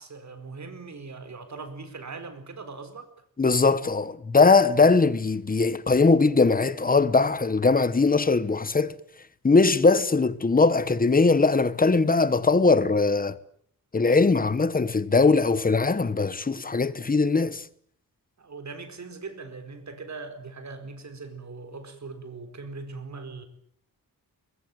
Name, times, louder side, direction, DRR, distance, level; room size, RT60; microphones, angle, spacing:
voice 1, 0.0-3.1 18.4-23.5, right 4 dB, 50° right, 4.4 m, -40 dB
voice 2, 3.4-9.0 9.4-13.4 13.9-17.6, left 4 dB, 25° left, 1.1 m, -20 dB
23.0 x 22.5 x 9.1 m
wide cardioid pair, 180°, 35 cm